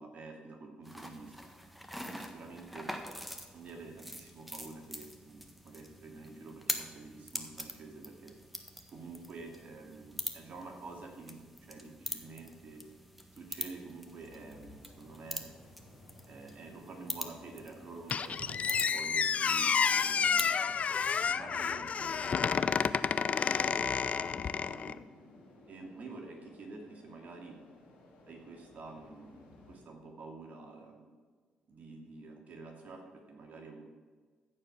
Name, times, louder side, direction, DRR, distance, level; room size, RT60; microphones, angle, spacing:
voice 1, 0.0-1.4 2.0-2.9 3.5-8.3 8.9-12.8 13.3-15.4 16.3-20.5 21.3-25.0 25.7-27.6 28.3-29.4 29.7-31.1 31.7-33.8, right 3 dB, 55° right, 2 dB, 2.4 m, -49 dB
sound 1, 0.8-20.6, equal, ahead, 1.5 m, -44 dB
sound 2, 14.1-29.8, left 2 dB, 80° left, 3.0 m, -57 dB
Squeak, 18.1-25.0, left 6 dB, 45° left, 0.4 m, -30 dB
14.5 x 4.9 x 7.2 m, 1.5 s
hypercardioid pair, 45°, 3 cm